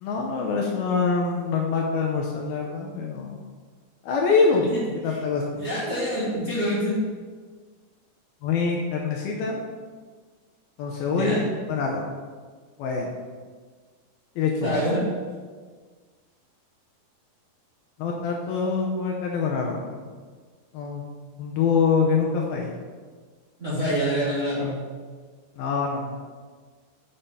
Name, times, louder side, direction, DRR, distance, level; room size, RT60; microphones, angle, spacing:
voice 1, 0.0-3.4 4.0-4.7 5.0-5.4 8.4-9.6 10.8-11.4 11.7-12.0 12.8-13.1 14.4-14.7 18.0-20.0 20.7-21.0 21.4-22.7 25.6-26.4, left 5 dB, 75° left, 0 dB, 2.4 m, -25 dB
voice 2, 5.6-7.0 11.1-11.4 14.6-15.0 23.6-24.7, equal, 25° right, -9 dB, 1.7 m, -26 dB
7.3 x 6.7 x 5.7 m, 1.5 s
omnidirectional pair, 4.9 m